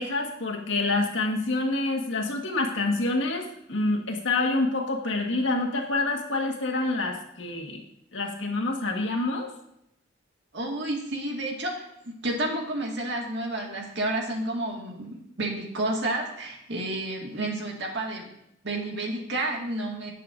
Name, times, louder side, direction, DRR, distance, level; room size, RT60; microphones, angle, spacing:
voice 1, 0.0-7.8 8.1-9.5, left 2 dB, 65° left, 1 dB, 1.7 m, -27 dB
voice 2, 10.5-18.3 18.6-20.1, right 1 dB, 60° right, 0 dB, 2.0 m, -30 dB
17.5 x 6.7 x 2.7 m, 0.77 s
head